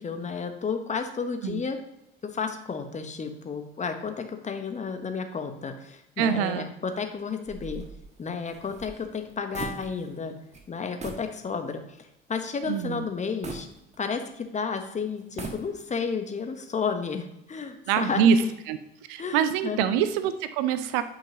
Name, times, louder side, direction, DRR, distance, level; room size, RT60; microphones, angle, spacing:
voice 1, 0.0-1.8 2.2-7.8 8.2-10.3 10.7-13.7 14.0-18.5 19.2-20.0, left 5 dB, 25° left, 7 dB, 1.0 m, -32 dB
voice 2, 6.2-6.7 12.6-13.1 17.9-18.4 18.7-18.8 19.1-21.0, right 7 dB, 55° right, 11 dB, 0.6 m, -24 dB
sound 1, 7.4-10.3 10.5-10.7 11.0-11.3 11.8-11.9 13.4-14.4 15.2-16.1, right 3 dB, 25° right, 1.3 m, -40 dB
8.8 x 5.8 x 2.9 m, 0.86 s
figure-of-eight pair, 60°, 30 cm